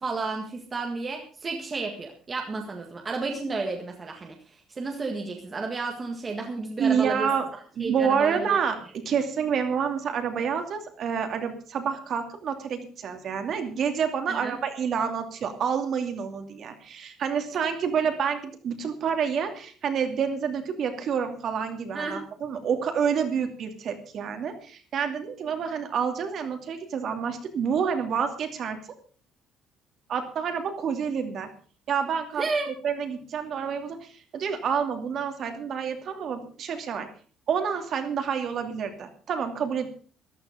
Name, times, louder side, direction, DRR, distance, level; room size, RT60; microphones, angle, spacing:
voice 1, 0.0-7.3 7.8-8.6 14.3-14.6 21.9-22.2 32.4-32.7, right 3 dB, 20° right, 2 dB, 1.7 m, -32 dB
voice 2, 6.8-7.5 7.8-28.8 30.1-31.5 31.9-32.5 32.8-37.1 37.5-39.9, right 7 dB, 45° right, 6 dB, 2.6 m, -28 dB
14.0 x 12.5 x 5.1 m, 0.41 s
cardioid pair, 165°, 0 cm